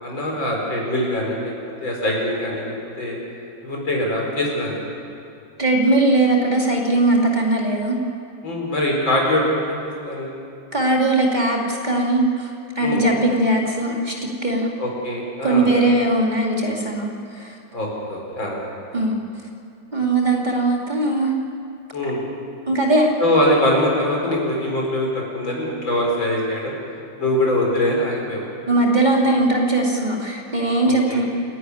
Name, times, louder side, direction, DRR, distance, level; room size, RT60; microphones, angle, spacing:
voice 1, 0.0-1.6 1.8-3.2 3.6-4.8 8.4-10.3 12.8-13.0 14.8-15.7 17.7-18.6 21.9-22.2 23.2-26.7 27.2-28.4 30.8-31.2, left 1 dB, 85° left, -2 dB, 5.6 m, -23 dB
voice 2, 5.6-8.0 10.7-12.5 12.8-14.7 15.4-17.6 18.9-19.1 19.9-21.3 22.0-22.1 22.7-23.1 28.7-31.2, right 2 dB, 25° right, -1 dB, 2.4 m, -19 dB
28.0 x 11.5 x 9.9 m, 2.6 s
omnidirectional pair, 2.1 m